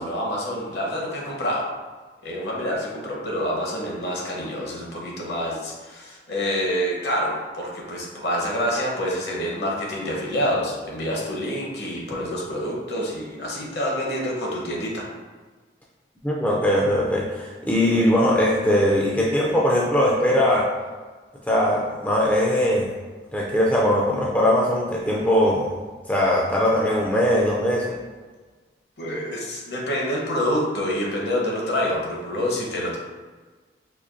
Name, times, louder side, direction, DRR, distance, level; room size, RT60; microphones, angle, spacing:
voice 1, 0.0-1.7 2.2-15.0 29.0-33.0, equal, 65° left, -3 dB, 0.9 m, -27 dB
voice 2, 16.2-20.7 21.5-22.9 23.3-25.7 26.1-28.0, left 1 dB, 10° left, -3 dB, 0.3 m, -20 dB
4.3 x 2.6 x 2.5 m, 1.4 s
head